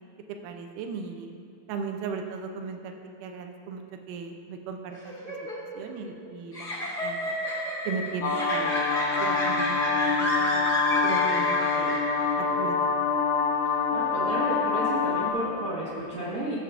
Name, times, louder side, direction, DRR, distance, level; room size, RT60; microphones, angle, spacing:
voice 1, 0.4-1.4 1.7-3.0 3.2-5.1 5.8-7.4 7.9-8.8 9.2-9.8 10.2-10.7 11.0-12.0 12.4-12.9, right 5 dB, 80° right, 4 dB, 2.1 m, -37 dB
sound 1, 4.9-12.5, left 1 dB, 35° left, 0.8 m, -31 dB
sound 2, 8.2-15.3, left 5 dB, 80° left, 2.0 m, -26 dB
voice 2, 13.9-16.6, right 1 dB, 55° right, -9 dB, 0.9 m, -32 dB
15.5 x 6.7 x 2.5 m, 2.5 s
omnidirectional pair, 3.9 m